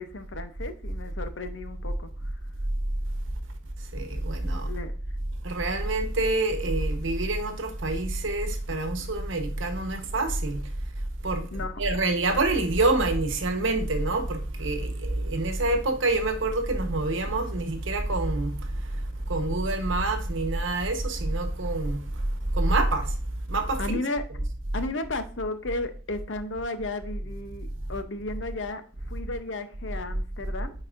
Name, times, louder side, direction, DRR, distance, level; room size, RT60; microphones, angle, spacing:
voice 1, 0.0-2.1 4.7-4.9 11.5-11.7 23.8-24.2 24.7-30.7, left 2 dB, 60° left, 0.7 m, -34 dB
voice 2, 3.9-4.7 5.4-10.6 11.2-18.7 19.3-22.0 22.5-23.1 23.5-24.0, right 2 dB, 65° right, 1.1 m, -26 dB
9.4 x 4.1 x 2.6 m
head